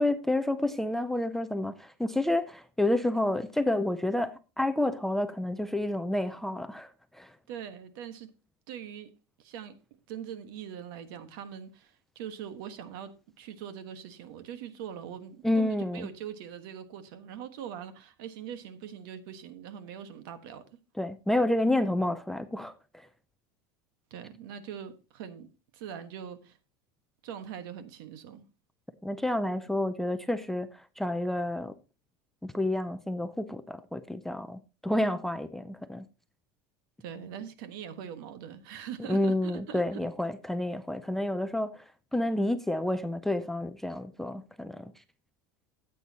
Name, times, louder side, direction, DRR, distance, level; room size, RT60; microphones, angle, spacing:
voice 1, 0.0-7.4 15.4-16.1 21.0-23.1 29.0-31.8 32.4-36.1 39.0-44.9, left 1 dB, 5° left, 0.4 m, -29 dB
voice 2, 7.5-8.3 8.7-9.1 9.4-9.8 10.1-20.6 24.1-26.6 27.2-28.4 37.0-40.1, right 9 dB, 65° right, 1.4 m, -42 dB
13.5 x 8.3 x 2.8 m
supercardioid pair, 165°, 13 cm